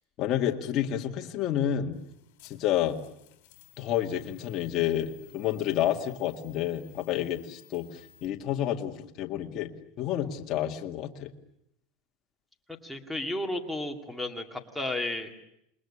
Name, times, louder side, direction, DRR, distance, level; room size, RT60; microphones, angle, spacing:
voice 1, 0.2-2.0 2.4-3.0 3.8-9.7 10.0-11.3, left 11 dB, 35° left, 2 dB, 2.1 m, -29 dB
sound 1, 1.9-8.3, left 20 dB, 65° left, 3.6 m, -57 dB
voice 2, 12.8-15.3, left 1 dB, ahead, 1 dB, 2.3 m, -33 dB
28.5 x 21.0 x 10.0 m, 0.78 s
supercardioid pair, 165°, 0 cm